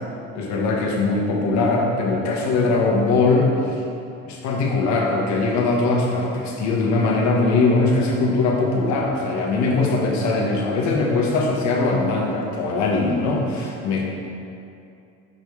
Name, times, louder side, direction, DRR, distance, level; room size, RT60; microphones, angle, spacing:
voice 1, 0.3-3.8 4.2-14.1, left 3 dB, 65° left, -1 dB, 1.3 m, -21 dB
5.4 x 5.3 x 4.8 m, 2.6 s
cardioid pair, 100°, 30 cm